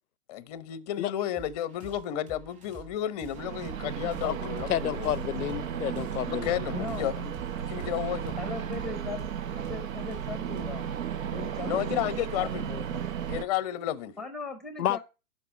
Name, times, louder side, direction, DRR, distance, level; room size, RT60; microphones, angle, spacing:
voice 1, 0.3-5.1 6.2-7.3 7.7-8.4 11.6-12.7 13.3-14.1, left 11 dB, 25° left, 0.7 m, -32 dB
sound 1, 1.3-12.4, right 5 dB, 15° right, 2.8 m, -51 dB
sound 2, 3.3-13.4, right 9 dB, 60° right, 0.8 m, -34 dB
sound 3, 4.0-13.7, right 5 dB, 30° right, 4.6 m, -54 dB
voice 2, 4.7-6.7 14.8-15.0, left 12 dB, 65° left, 0.6 m, -30 dB
voice 3, 6.7-7.1 8.4-9.3 9.6-11.0 11.2-12.1 12.4-13.0 14.2-15.0, left 4 dB, ahead, 0.9 m, -39 dB
12.0 x 5.3 x 5.8 m
hypercardioid pair, 135°, 47 cm